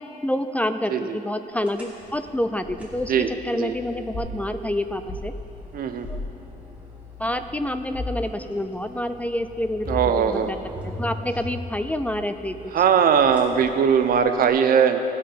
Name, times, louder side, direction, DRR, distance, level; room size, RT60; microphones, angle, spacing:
voice 1, 0.2-5.3 6.1-6.2 7.2-10.6 11.0-12.6, left 1 dB, 10° left, 9 dB, 0.3 m, -28 dB
sound 1, 1.6-14.5, left 1 dB, 10° right, 2.0 m, -41 dB
voice 2, 3.1-3.7 5.7-6.2 9.9-10.5 12.7-15.0, right 7 dB, 70° right, 8 dB, 0.7 m, -20 dB
sound 2, 4.1-4.4 5.1-5.3 6.0-6.3 7.9-8.3 9.9-10.4, left 1 dB, 35° left, 2.2 m, -32 dB
17.5 x 6.4 x 5.6 m, 2.8 s
wide cardioid pair, 145°, 15 cm